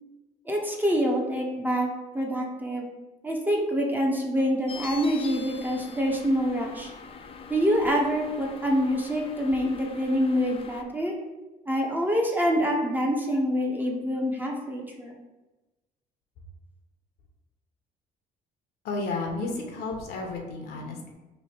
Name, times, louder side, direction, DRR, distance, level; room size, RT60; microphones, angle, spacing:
voice 1, 0.5-1.9 2.1-2.9 3.2-6.9 7.5-11.2 11.7-15.2, equal, 10° right, 0 dB, 0.6 m, -26 dB
sound 1, 4.7-10.8, left 5 dB, 35° left, 0.4 m, -43 dB
voice 2, 18.8-21.1, left 3 dB, 70° left, 1 dB, 0.8 m, -32 dB
3.1 x 2.6 x 4.5 m, 1.1 s
cardioid pair, 110°, 17 cm